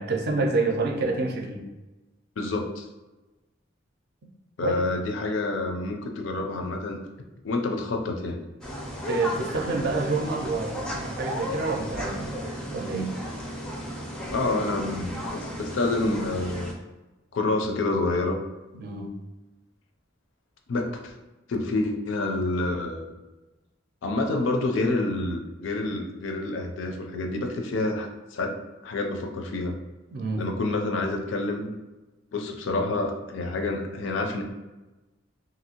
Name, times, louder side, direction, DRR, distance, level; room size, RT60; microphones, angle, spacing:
voice 1, 0.0-1.6 4.6-4.9 9.1-12.4 12.7-13.1 18.7-19.1 30.1-30.5, right 3 dB, 55° right, 2 dB, 0.5 m, -28 dB
voice 2, 2.4-2.9 4.6-7.0 7.4-8.4 14.3-16.7 17.3-18.4 20.7-21.1 21.5-23.1 24.0-28.5 28.8-29.7 30.4-31.7 32.3-34.4, left 2 dB, 75° left, 4 dB, 0.4 m, -28 dB
sound 1, 8.6-16.7, equal, 5° left, 0.4 m, -34 dB
2.8 x 2.6 x 2.8 m, 1.1 s
head